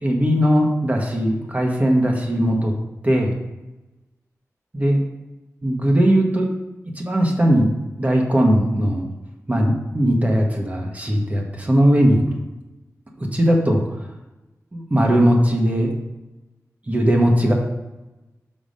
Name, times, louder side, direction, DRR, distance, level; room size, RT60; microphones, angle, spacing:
voice 1, 0.0-2.7 3.0-3.3 4.7-5.0 5.6-6.5 6.9-7.7 8.0-9.1 9.5-12.2 13.2-13.8 14.7-15.9 16.9-17.5, equal, 25° right, 0 dB, 1.5 m, -18 dB
6.0 x 5.5 x 5.4 m, 1.0 s
wide cardioid pair, 85°, 6 cm